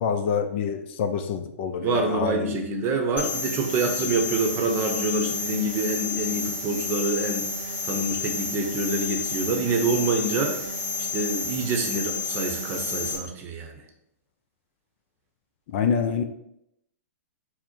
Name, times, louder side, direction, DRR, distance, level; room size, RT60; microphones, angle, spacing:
voice 1, 0.0-2.6 15.7-16.2, left 6 dB, 45° left, 8 dB, 0.4 m, -26 dB
voice 2, 1.8-7.5 7.8-10.7 10.9-13.8, right 3 dB, 30° right, 3 dB, 0.7 m, -26 dB
sound 1, 3.2-13.2, left 4 dB, 15° left, 1.4 m, -30 dB
4.3 x 2.1 x 4.3 m, 0.77 s
hypercardioid pair, 115°, 8 cm